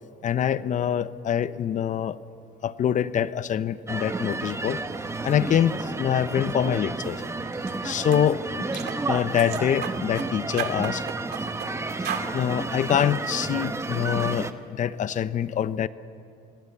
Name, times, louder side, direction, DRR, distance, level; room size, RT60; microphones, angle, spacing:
voice 1, 0.2-2.2 2.6-4.8 5.2-7.2 7.8-11.0 12.0-12.1 12.3-15.9, left 9 dB, 50° left, 15 dB, 0.7 m, -25 dB
sound 1, 3.9-14.5, right 3 dB, 15° right, 1.2 m, -31 dB
sound 2, 7.5-7.7 8.1-8.3 8.7-9.0 9.4-10.3 10.6-11.7 12.0-12.3, right 10 dB, 75° right, 2.0 m, -34 dB
26.0 x 19.0 x 8.1 m, 2.7 s
cardioid pair, 110°, 17 cm